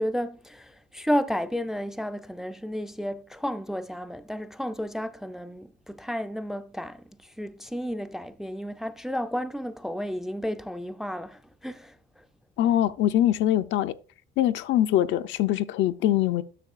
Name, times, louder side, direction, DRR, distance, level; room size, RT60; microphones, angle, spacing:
voice 1, 0.0-12.2, equal, ahead, 0.4 m, -32 dB
voice 2, 12.6-13.9 14.4-16.4, left 12 dB, 70° left, 0.5 m, -23 dB
11.0 x 6.5 x 2.4 m
cardioid pair, 115°, 19 cm